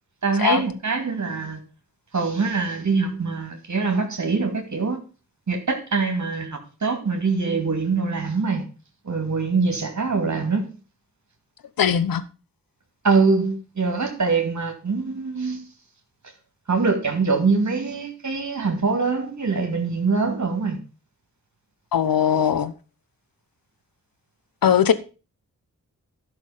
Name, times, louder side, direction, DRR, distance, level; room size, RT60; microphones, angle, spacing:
voice 1, 0.2-1.6 2.1-5.0 5.5-8.6 9.1-10.7 13.0-15.6 16.7-20.8, right 4 dB, 55° right, 2.4 m, -23 dB
voice 2, 11.8-12.2 21.9-22.7 24.6-24.9, left 8 dB, 75° left, 0.9 m, -19 dB
11.5 x 6.2 x 5.0 m
cardioid pair, 45°, 34 cm